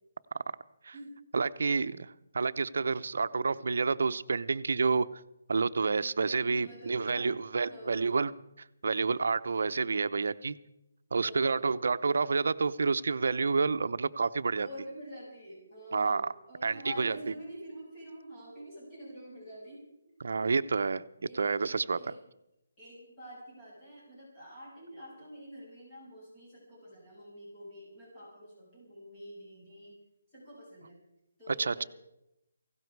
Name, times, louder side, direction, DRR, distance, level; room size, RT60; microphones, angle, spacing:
voice 1, 1.3-5.1 5.5-8.3 8.8-10.5 11.1-14.7 15.9-16.3 16.6-17.2 20.2-21.0 21.3-22.0 31.5-31.8, right 4 dB, 65° right, 12 dB, 0.8 m, -29 dB
voice 2, 6.5-7.4 7.6-8.3 11.1-11.9 14.6-19.8 21.2-21.4 21.9-22.2 22.8-30.0 30.3-31.0 31.4-31.9, equal, 15° left, -7 dB, 6.7 m, -47 dB
18.0 x 16.5 x 4.7 m, 0.86 s
hypercardioid pair, 170°, 0 cm